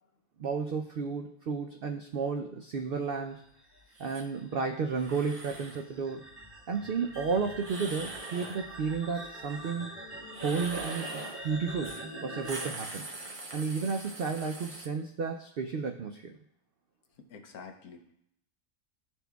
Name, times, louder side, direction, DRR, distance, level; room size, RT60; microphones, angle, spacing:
voice 1, 0.4-3.4 4.0-6.2 6.7-9.9 10.4-13.1 13.5-16.4, right 5 dB, 85° right, 4 dB, 0.5 m, -32 dB
sound 1, 3.4-12.7, right 1 dB, 35° left, 2.1 m, -44 dB
sound 2, 4.0-4.3 4.9-5.8 7.6-8.6 10.3-11.4 11.8-12.1 12.3-14.9, right 2 dB, 35° right, 0.6 m, -42 dB
sound 3, 7.1-8.5 9.1-10.3 11.0-12.5, left 1 dB, 55° left, 3.3 m, -54 dB
voice 2, 17.2-18.1, left 5 dB, 80° left, 4 dB, 1.3 m, -48 dB
13.0 x 4.3 x 2.3 m, 0.74 s
omnidirectional pair, 1.5 m